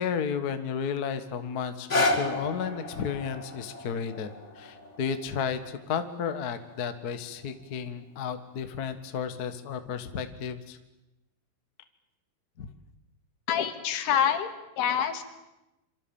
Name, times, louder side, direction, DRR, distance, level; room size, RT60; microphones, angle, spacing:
voice 1, 0.0-10.8 12.6-12.7, left 7 dB, 60° left, 9 dB, 1.0 m, -33 dB
sound 1, 1.6-7.7 8.4-8.5, left 2 dB, 25° left, 1.7 m, -33 dB
voice 2, 13.5-14.5 14.8-15.2, left 9 dB, 90° left, 8 dB, 4.0 m, -26 dB
27.0 x 25.0 x 7.3 m, 0.96 s
omnidirectional pair, 4.5 m